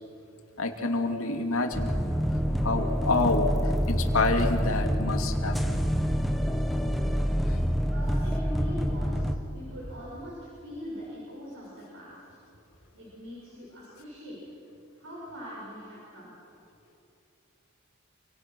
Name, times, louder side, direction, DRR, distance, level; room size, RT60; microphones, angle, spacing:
voice 1, 0.6-1.9 2.6-3.5 3.9-5.8, left 3 dB, 80° left, 4 dB, 2.6 m, -27 dB
sound 1, 1.7-9.4, equal, ahead, 1.3 m, -27 dB
voice 2, 7.9-12.2 13.0-14.5 15.0-16.3, equal, 65° right, -6 dB, 6.7 m, -42 dB
28.5 x 26.0 x 6.2 m, 2.9 s
head